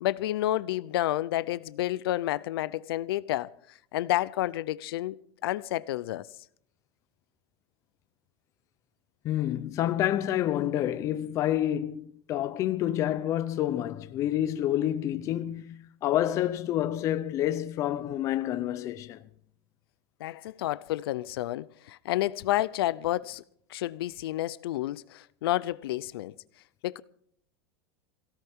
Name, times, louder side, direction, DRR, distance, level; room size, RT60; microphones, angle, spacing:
voice 1, 0.0-3.5 3.9-6.3 20.2-23.4 23.7-26.3 26.8-27.0, left 15 dB, 65° left, 0.6 m, -30 dB
voice 2, 9.2-19.2, left 12 dB, 25° left, 0.7 m, -28 dB
23.0 x 17.0 x 3.6 m
supercardioid pair, 180°, 13 cm